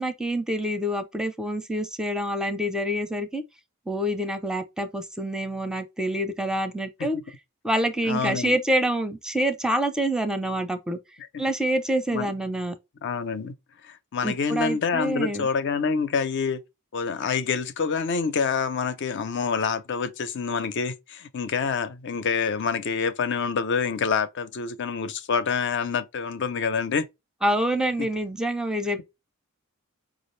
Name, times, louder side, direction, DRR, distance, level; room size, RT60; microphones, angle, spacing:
voice 1, 0.0-3.4 3.9-7.2 7.6-11.0 11.4-12.8 14.2-15.5 27.4-29.0, right 1 dB, 5° right, 0.5 m, -26 dB
voice 2, 8.0-8.6 11.2-11.3 12.1-12.3 13.0-13.5 13.8-16.6 16.9-27.1 28.0-28.1, left 5 dB, 55° left, 0.5 m, -27 dB
5.0 x 2.4 x 3.1 m
head